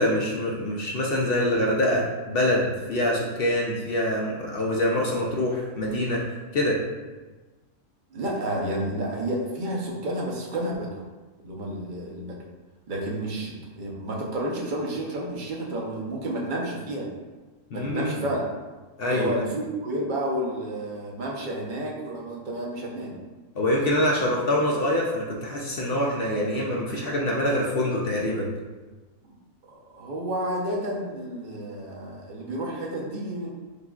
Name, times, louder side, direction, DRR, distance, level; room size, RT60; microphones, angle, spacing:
voice 1, 0.0-6.2 6.5-6.8 17.7-18.1 19.0-19.5 23.6-28.5, left 1 dB, 60° left, -2 dB, 0.6 m, -25 dB
voice 2, 8.1-11.0 11.4-12.4 12.9-17.1 17.7-18.4 19.1-23.1 29.2-29.4 29.7-33.5, right 1 dB, 45° right, -2 dB, 0.8 m, -31 dB
6.6 x 2.4 x 2.3 m, 1.2 s
omnidirectional pair, 1.4 m